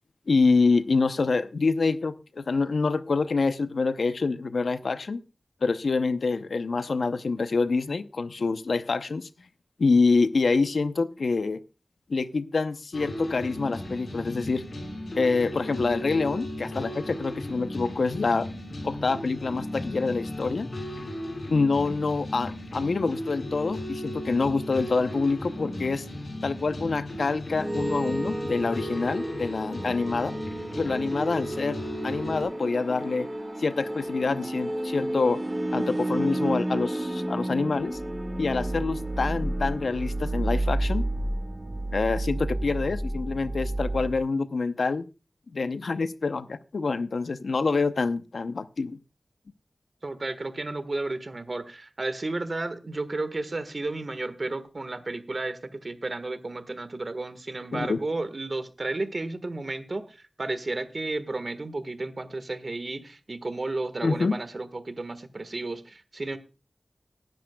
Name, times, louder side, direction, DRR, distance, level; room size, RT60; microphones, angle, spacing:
voice 1, 0.3-5.2 5.6-9.3 9.8-11.6 12.1-14.6 15.1-18.5 18.8-20.7 21.5-26.1 26.4-30.3 30.8-33.3 33.6-35.4 35.7-38.0 38.4-41.0 41.9-45.1 45.5-49.0 57.7-58.0 64.0-64.4, left 4 dB, 85° left, 0.7 m, -26 dB
sound 1, 12.9-32.4, left 1 dB, 65° left, 5.6 m, -36 dB
sound 2, 27.6-44.2, right 1 dB, 20° right, 1.7 m, -31 dB
voice 2, 50.0-66.4, right 2 dB, 50° right, 1.4 m, -33 dB
19.0 x 10.5 x 2.3 m
wide cardioid pair, 85°, 0 cm